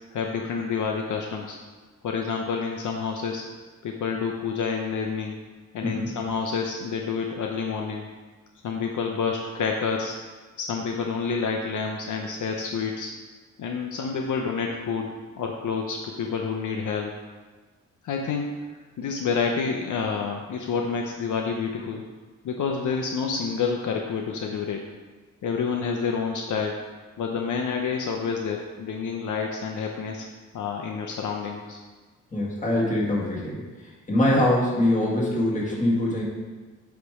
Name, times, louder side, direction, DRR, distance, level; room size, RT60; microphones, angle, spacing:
voice 1, 0.1-1.6 2.0-3.4 3.8-5.4 5.7-8.1 8.6-10.2 10.6-13.1 13.6-17.2 18.0-18.5 19.0-22.0 22.4-24.8 25.4-26.8 27.2-30.3 30.5-31.8, left 5 dB, 70° left, 1 dB, 0.7 m, -28 dB
voice 2, 5.8-6.1 32.3-33.6 34.1-36.2, left 1 dB, 25° left, -5 dB, 1.8 m, -23 dB
8.1 x 3.2 x 4.8 m, 1.3 s
cardioid pair, 95°, 32 cm